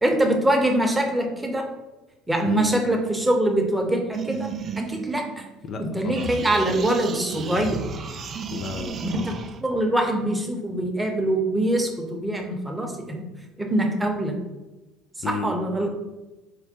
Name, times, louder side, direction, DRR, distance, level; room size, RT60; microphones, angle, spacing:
voice 1, 0.0-1.7 2.3-4.5 4.8-5.4 5.8-7.8 9.0-9.3 9.6-13.2 13.6-14.4 15.3-15.9, right 1 dB, 10° right, 2 dB, 0.8 m, -23 dB
sound 1, 4.1-5.8 6.1-9.6, right 6 dB, 45° right, 0.4 m, -33 dB
voice 2, 5.7-6.3 8.5-9.3 15.2-15.5, left 3 dB, 45° left, 4 dB, 0.4 m, -33 dB
4.5 x 2.1 x 4.2 m, 1.1 s
hypercardioid pair, 65°, 0 cm